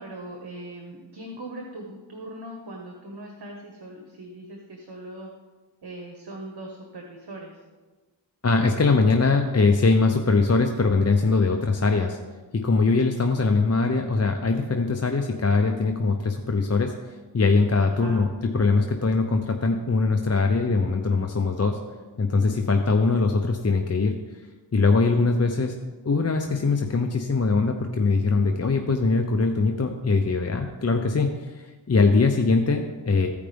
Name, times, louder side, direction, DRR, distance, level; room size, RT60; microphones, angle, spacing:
voice 1, 0.0-5.3 5.8-7.6 17.9-18.2, right 1 dB, 60° right, 1 dB, 1.4 m, -40 dB
voice 2, 8.4-12.2 12.6-18.3 18.5-21.8 22.2-24.4 24.7-25.8 26.0-33.3, left 3 dB, 35° left, 4 dB, 0.7 m, -22 dB
15.0 x 5.0 x 3.4 m, 1.3 s
cardioid pair, 40°, 45 cm